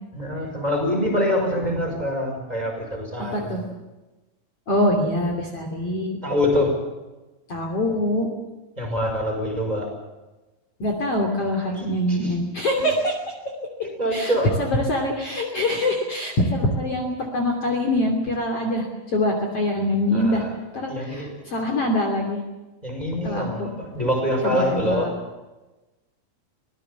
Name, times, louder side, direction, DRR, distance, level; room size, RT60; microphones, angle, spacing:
voice 1, 0.1-3.7 6.2-6.7 8.8-9.9 11.7-12.3 13.8-14.5 20.1-20.6 20.9-21.3 22.8-25.1, left 1 dB, 10° right, 1 dB, 5.9 m, -25 dB
voice 2, 3.3-3.6 4.7-6.2 7.5-8.3 10.8-13.1 14.1-14.3 14.6-20.4 20.7-22.4 23.2-23.7 24.4-25.1, left 1 dB, 45° left, 2 dB, 3.7 m, -24 dB
24.5 x 18.0 x 7.1 m, 1.1 s
omnidirectional pair, 4.1 m